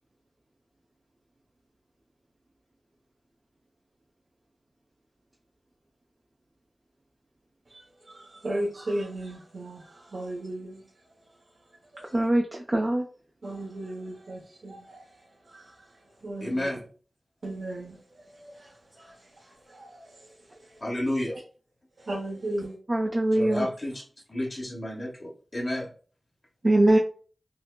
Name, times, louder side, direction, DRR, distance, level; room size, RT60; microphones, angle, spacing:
voice 1, 7.7-11.1 11.9-12.2 13.4-16.7 17.4-20.8 22.0-22.8, right 1 dB, 85° right, 0.8 m, -37 dB
voice 2, 12.1-13.0 22.9-23.7 26.6-27.0, right 1 dB, 40° right, 0.5 m, -22 dB
voice 3, 16.4-16.8 20.8-21.4 23.3-24.0 24.3-25.9, left 1 dB, 35° left, 1.3 m, -31 dB
5.7 x 2.0 x 2.2 m
wide cardioid pair, 90°, 0 cm